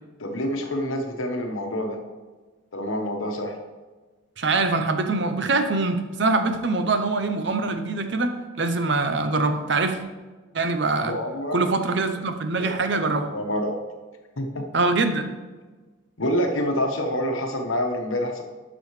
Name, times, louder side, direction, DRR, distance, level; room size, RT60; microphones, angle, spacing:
voice 1, 0.2-2.0 2.7-3.6 11.0-11.6 12.6-12.7 13.2-13.8 14.4-14.6 16.2-18.4, equal, 75° left, 3 dB, 1.2 m, -27 dB
voice 2, 4.4-10.0 10.5-11.1 11.5-13.3 14.7-15.3, right 3 dB, 55° right, 7 dB, 0.7 m, -23 dB
12.0 x 6.2 x 3.2 m, 1.3 s
head